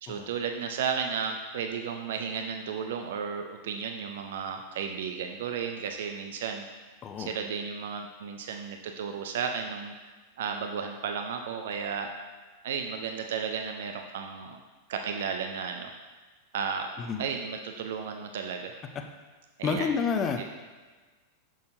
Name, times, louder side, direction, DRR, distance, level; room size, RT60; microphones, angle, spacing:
voice 1, 0.0-6.7 7.2-12.1 12.6-14.6 14.9-15.9 16.5-16.9 17.2-18.7 19.6-20.0, right 6 dB, 55° right, 5 dB, 0.5 m, -34 dB
voice 2, 19.6-20.5, left 5 dB, 30° left, 5 dB, 0.5 m, -29 dB
6.7 x 6.2 x 2.6 m, 1.3 s
figure-of-eight pair, 90°, 0 cm